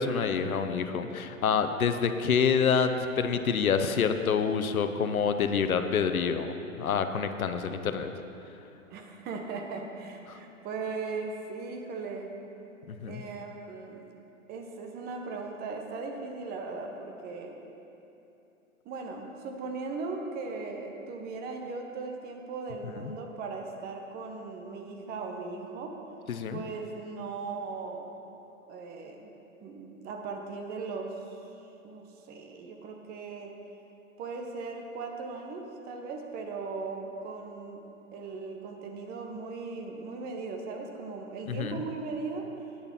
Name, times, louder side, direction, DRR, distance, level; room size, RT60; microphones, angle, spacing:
voice 1, 0.0-8.1 10.3-10.4 12.9-13.2 23.0-23.1 26.3-26.6 41.5-41.8, left 6 dB, 85° left, 8 dB, 0.8 m, -27 dB
voice 2, 8.9-12.3 13.1-14.1 14.5-17.6 18.8-26.0 26.5-28.1 28.7-29.3 29.6-31.2 31.8-33.6 34.2-37.8 38.1-42.5, right 4 dB, 25° right, 2 dB, 0.9 m, -38 dB
8.9 x 6.8 x 5.8 m, 2.9 s
hypercardioid pair, 120°, 41 cm